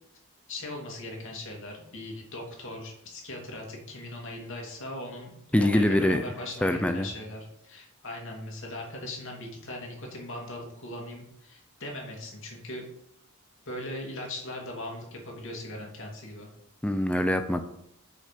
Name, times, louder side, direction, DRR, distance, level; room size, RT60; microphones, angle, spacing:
voice 1, 0.5-12.8 13.7-16.5, left 1 dB, 60° left, 0 dB, 2.8 m, -39 dB
voice 2, 5.5-6.2 6.6-7.1 16.8-17.6, left 1 dB, 5° left, 8 dB, 0.5 m, -24 dB
8.4 x 6.4 x 5.2 m, 0.73 s
head